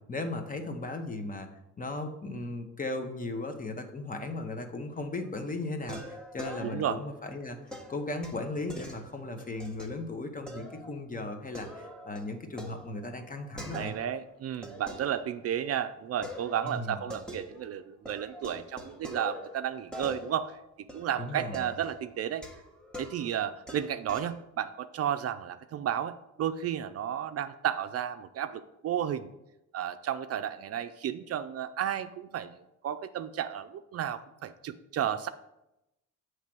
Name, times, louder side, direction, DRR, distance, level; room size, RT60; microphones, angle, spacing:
voice 1, 0.1-1.5 1.8-7.6 7.9-13.9 16.6-17.0 21.2-21.7, left 2 dB, 25° left, 5 dB, 1.0 m, -36 dB
sound 1, 4.9-5.3 5.9-7.1 7.7-9.9 10.5-10.9 11.3-14.2 14.6-15.7 16.2-17.8 18.1-24.4, equal, 5° left, 1.0 m, -45 dB
voice 2, 6.6-7.0 13.7-20.6 20.9-22.4 23.0-29.3 29.7-32.6 32.8-35.3, right 10 dB, 55° right, 10 dB, 0.4 m, -33 dB
7.3 x 3.2 x 6.0 m, 0.89 s
cardioid pair, 90°, 30 cm